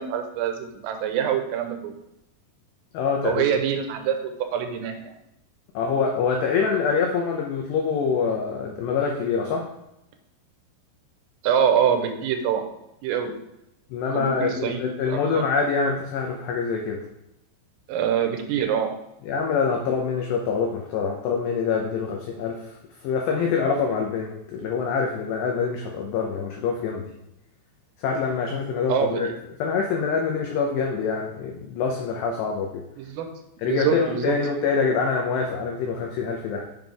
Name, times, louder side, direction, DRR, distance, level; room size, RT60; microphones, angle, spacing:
voice 1, 0.0-1.9 3.2-5.1 11.4-12.6 13.0-13.3 14.1-14.8 15.1-15.4 17.9-18.9 28.9-29.2 33.0-33.3 33.6-34.4, right 8 dB, 85° right, 6 dB, 3.4 m, -25 dB
voice 2, 2.9-3.4 5.7-9.7 13.9-17.0 19.3-22.8 23.0-27.0 28.0-29.3 29.6-32.8 33.6-36.7, left 5 dB, 85° left, 1 dB, 2.4 m, -25 dB
7.9 x 7.1 x 3.5 m, 0.86 s
omnidirectional pair, 6.0 m